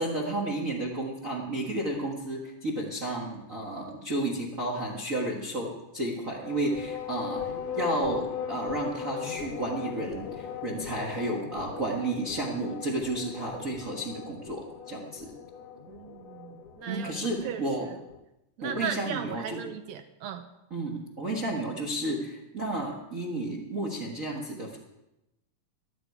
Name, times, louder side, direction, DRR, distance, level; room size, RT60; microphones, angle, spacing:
voice 1, 0.0-15.3 16.9-17.9 18.6-19.6 20.7-24.8, right 1 dB, 55° right, -1 dB, 0.9 m, -32 dB
sound 1, 6.3-18.2, left 7 dB, 80° left, 2.3 m, -39 dB
voice 2, 15.9-17.1 17.4-17.6 18.6-20.5, right 8 dB, 80° right, 8 dB, 1.6 m, -37 dB
13.0 x 12.0 x 4.7 m, 0.93 s
omnidirectional pair, 3.8 m